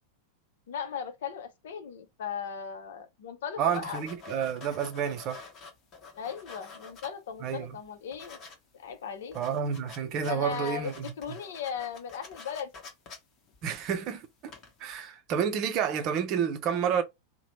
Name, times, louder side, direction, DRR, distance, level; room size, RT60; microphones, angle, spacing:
voice 1, 0.7-4.0 6.2-8.4 8.7-9.4 10.2-10.9 11.2-12.7, left 7 dB, 60° left, 0.7 m, -37 dB
voice 2, 3.6-5.4 7.4-7.7 9.3-11.0 13.6-14.5 14.8-17.0, right 7 dB, 40° right, 0.6 m, -30 dB
sound 1, 3.7-7.5 7.8-8.6 8.9-9.0 9.2-14.1 14.4-14.9, left 4 dB, 30° left, 1.0 m, -48 dB
2.9 x 2.1 x 3.0 m
figure-of-eight pair, 90°, 0 cm